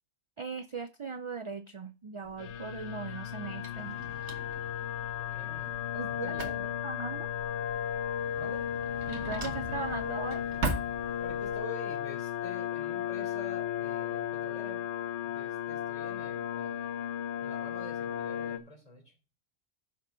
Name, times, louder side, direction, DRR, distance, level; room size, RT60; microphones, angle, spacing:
voice 1, 0.4-4.0 5.9-6.4 6.8-7.3 9.1-10.4, right 5 dB, 50° right, 11 dB, 0.3 m, -39 dB
Drawer open or close, 2.2-11.6, right 2 dB, 70° right, 1.8 m, -41 dB
sound 1, 2.4-18.6, left 10 dB, 75° left, 1.1 m, -35 dB
voice 2, 5.2-6.7 8.4-8.6 11.2-14.8 15.2-17.0 17.4-19.1, left 1 dB, 30° left, 2 dB, 3.5 m, -48 dB
11.0 x 6.6 x 3.7 m, 0.34 s
omnidirectional pair, 1.2 m